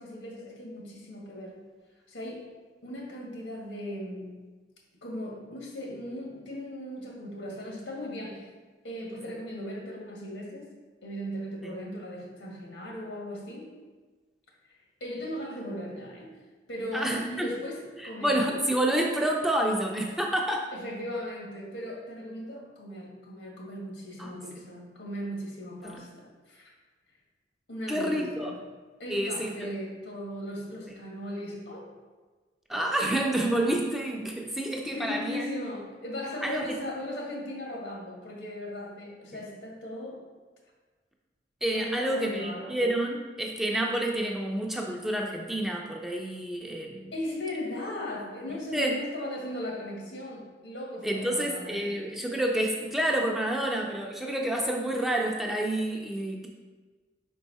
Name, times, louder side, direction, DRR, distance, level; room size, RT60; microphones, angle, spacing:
voice 1, 0.0-1.6 2.1-2.5 2.8-4.4 5.0-8.5 8.8-10.7 11.0-13.8 15.0-16.4 16.7-18.4 20.7-26.7 27.7-28.6 29.0-31.9 34.9-40.3 41.7-42.8 47.1-52.1, left 1 dB, 85° left, -2 dB, 1.7 m, -38 dB
voice 2, 16.9-17.5 18.0-20.7 24.2-24.3 25.8-26.0 27.9-28.5 29.1-29.7 32.7-35.5 36.4-36.7 39.3-39.4 41.6-47.1 48.7-48.9 51.0-56.5, right 1 dB, ahead, 0 dB, 0.4 m, -29 dB
5.3 x 4.6 x 4.1 m, 1.4 s
head